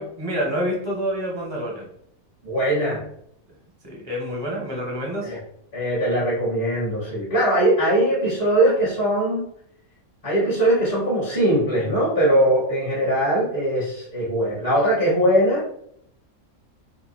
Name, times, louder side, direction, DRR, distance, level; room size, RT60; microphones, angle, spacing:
voice 1, 0.0-1.8 3.8-5.3, equal, 20° right, -2 dB, 1.0 m, -27 dB
voice 2, 2.4-3.0 5.2-5.4 5.7-9.5 10.2-15.6, right 1 dB, 30° left, -9 dB, 1.7 m, -21 dB
4.5 x 2.6 x 4.1 m, 0.70 s
omnidirectional pair, 1.5 m